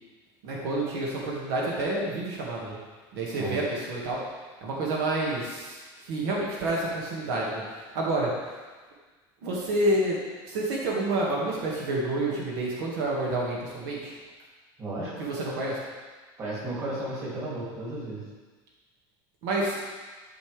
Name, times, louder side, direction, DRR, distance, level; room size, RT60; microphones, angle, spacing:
voice 1, 0.4-2.8 3.1-4.2 4.6-5.8 6.1-8.3 9.4-14.2 15.2-15.8 19.4-19.8, right 2 dB, 80° right, -4 dB, 2.0 m, -29 dB
voice 2, 14.8-15.2 16.4-18.2, right 1 dB, 30° right, -6 dB, 2.7 m, -34 dB
12.5 x 5.5 x 3.5 m, 1.4 s
cardioid pair, 165°, 12 cm